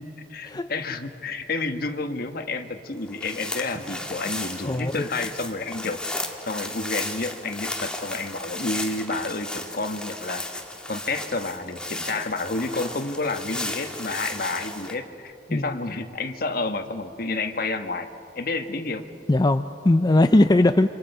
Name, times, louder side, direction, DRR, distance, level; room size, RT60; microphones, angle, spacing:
voice 1, 0.0-6.0 6.5-10.4 10.9-18.1 18.3-19.0, left 3 dB, 60° left, 7 dB, 1.4 m, -30 dB
sound 1, 3.0-14.9, left 1 dB, 5° left, 1.9 m, -34 dB
voice 2, 4.6-5.1 15.5-15.8 19.3-20.9, left 2 dB, 25° left, 9 dB, 0.5 m, -20 dB
28.5 x 26.0 x 5.5 m, 2.7 s
head